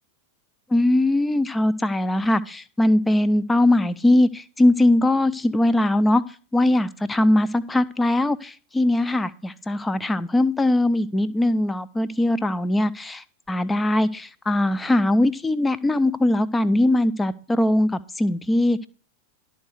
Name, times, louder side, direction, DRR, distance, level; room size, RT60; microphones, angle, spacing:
voice 1, 0.7-6.2 6.5-18.9, left 1 dB, 10° left, 0.6 m, -21 dB
12.0 x 4.6 x 8.0 m
figure-of-eight pair, 90°, 0 cm